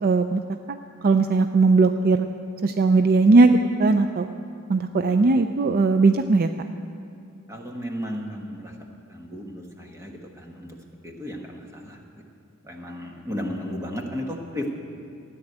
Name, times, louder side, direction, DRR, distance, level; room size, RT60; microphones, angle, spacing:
voice 1, 0.0-0.4 0.7-0.8 1.0-2.3 2.6-4.3 4.7-6.5, right 3 dB, 45° right, 8 dB, 0.4 m, -18 dB
voice 2, 7.5-8.7 9.1-10.8 11.0-12.0 12.7-14.7, equal, 15° right, 1 dB, 1.4 m, -34 dB
14.0 x 10.0 x 8.0 m, 2.5 s
head